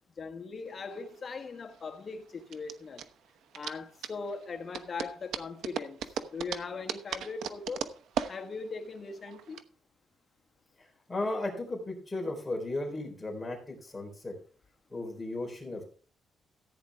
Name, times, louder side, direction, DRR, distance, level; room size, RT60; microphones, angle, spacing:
voice 1, 0.2-3.1 3.5-7.9 8.3-9.6, left 4 dB, 35° left, 1.5 m, -40 dB
sound 1, 0.7-9.6, right 8 dB, 80° right, 0.9 m, -39 dB
voice 2, 10.8-14.3 14.9-15.8, left 2 dB, 15° left, 3.8 m, -35 dB
15.0 x 9.0 x 3.5 m
cardioid pair, 155°, 0 cm